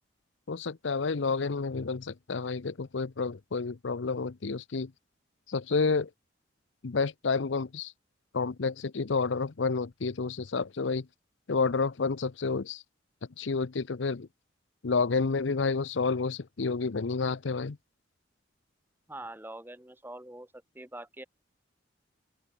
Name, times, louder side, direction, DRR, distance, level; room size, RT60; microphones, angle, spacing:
voice 1, 0.5-4.9 5.5-6.1 6.8-7.9 8.3-11.1 11.5-12.8 13.4-14.3 14.8-17.8, left 4 dB, 70° left, 0.7 m, -30 dB
voice 2, 19.1-20.5 20.8-21.2, right 1 dB, 10° right, 1.6 m, -43 dB
open air
head